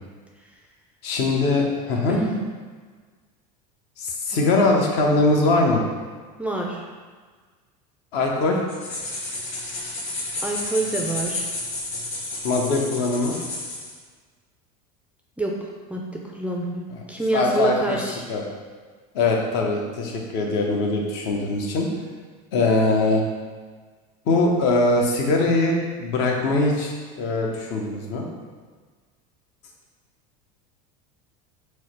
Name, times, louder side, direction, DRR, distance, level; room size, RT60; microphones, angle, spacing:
voice 1, 1.0-2.2 4.0-5.8 8.1-8.6 12.4-13.3 17.3-18.0 18.3-18.4 19.1-21.9 22.5-23.2 24.3-28.2, left 2 dB, 60° left, 0 dB, 0.8 m, -21 dB
voice 2, 6.4-6.8 10.4-11.5 15.4-18.3, right 2 dB, 5° right, -1 dB, 0.3 m, -27 dB
sound 1, 8.7-13.9, left 2 dB, 35° left, 1.3 m, -31 dB
4.7 x 2.1 x 4.4 m, 1.5 s
supercardioid pair, 120°, 20 cm